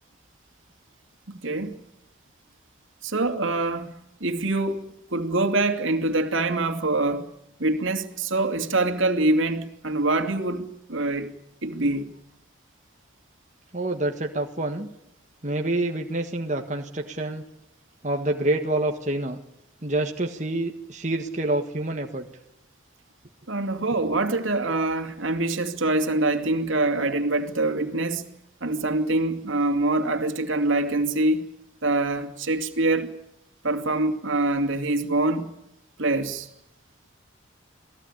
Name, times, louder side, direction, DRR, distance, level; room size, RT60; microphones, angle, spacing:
voice 1, 1.3-1.8 3.0-3.9 4.2-7.3 7.6-11.3 11.6-12.1 23.5-28.3 28.6-31.5 31.8-33.1 33.6-35.5 36.0-36.5, right 2 dB, 75° right, 2.6 m, -25 dB
voice 2, 13.7-14.9 15.4-17.4 18.0-19.4 19.8-22.3, right 2 dB, 35° right, 1.6 m, -27 dB
28.0 x 17.5 x 10.0 m
head